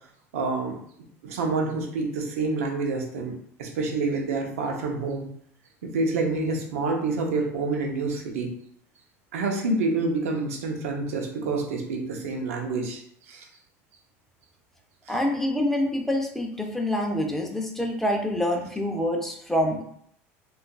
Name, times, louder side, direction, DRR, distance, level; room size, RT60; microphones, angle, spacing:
voice 1, 0.3-0.8 1.2-3.3 3.6-5.3 5.8-8.5 9.3-13.5 15.1-15.2, right 3 dB, 85° right, 2 dB, 0.6 m, -28 dB
voice 2, 15.1-19.8, left 1 dB, 5° left, 2 dB, 0.6 m, -26 dB
3.7 x 2.4 x 2.3 m, 0.67 s
hypercardioid pair, 95°, 8 cm